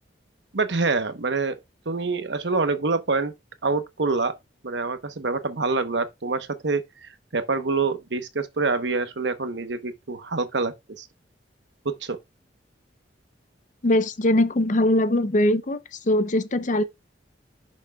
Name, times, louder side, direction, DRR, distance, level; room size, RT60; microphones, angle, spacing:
voice 1, 0.5-1.6 1.9-3.3 3.6-4.3 4.6-11.1 11.8-12.2, right 3 dB, 70° right, 1.0 m, -26 dB
voice 2, 13.8-15.8 16.1-16.8, left 1 dB, 45° left, 0.7 m, -21 dB
10.5 x 6.2 x 2.4 m
head